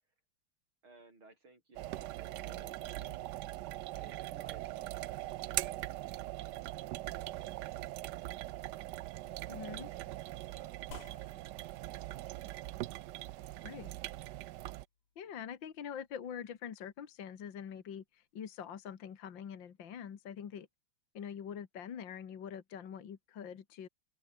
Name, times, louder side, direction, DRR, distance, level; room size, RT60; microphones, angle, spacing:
voice 1, 0.8-3.3 3.9-9.7 10.0-13.2, right 2 dB, 70° right, 7.8 m, -63 dB
sound 1, 1.7-14.8, right 16 dB, 85° right, 0.9 m, -41 dB
voice 2, 9.5-9.9 13.6-13.9 15.2-20.7 21.1-23.9, left 8 dB, 60° left, 2.3 m, -44 dB
sound 2, 10.9-19.6, left 5 dB, 90° left, 4.0 m, -62 dB
open air
omnidirectional pair, 2.4 m